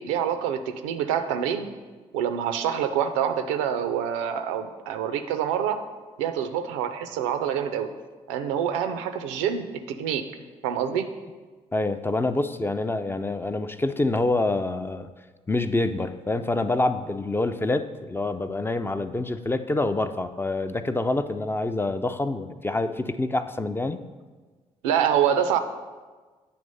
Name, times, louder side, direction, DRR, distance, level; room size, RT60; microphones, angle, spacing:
voice 1, 0.0-1.7 2.1-5.8 6.2-7.9 8.3-10.2 10.6-11.1 24.8-25.6, right 9 dB, 70° right, 8 dB, 0.5 m, -26 dB
voice 2, 11.7-15.1 15.5-24.0, left 2 dB, 15° left, 9 dB, 0.4 m, -26 dB
8.7 x 3.0 x 5.3 m, 1.3 s
figure-of-eight pair, 40°, 17 cm